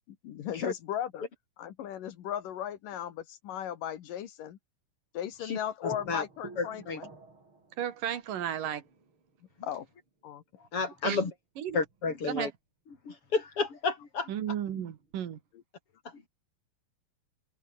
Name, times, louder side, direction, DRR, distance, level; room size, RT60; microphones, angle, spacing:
voice 1, 0.1-1.2 1.6-4.6 5.1-7.1 9.6-9.9 10.2-10.4 14.8-14.9, left 10 dB, 75° left, 3.2 m, -37 dB
sound 1, 5.3-5.4 5.9-10.4 11.2-11.3 11.7-12.4 14.7-15.4, right 3 dB, 35° right, 6.3 m, -52 dB
voice 2, 5.4-6.2 6.6-7.0 10.6-11.3 11.7-12.5 13.0-14.3 16.0-16.3, left 4 dB, 40° left, 4.5 m, -32 dB
voice 3, 7.8-8.8 11.0-11.2 11.6-11.8 12.3-12.5 14.3-15.4, right 10 dB, 75° right, 3.5 m, -33 dB
omnidirectional pair, 3.9 m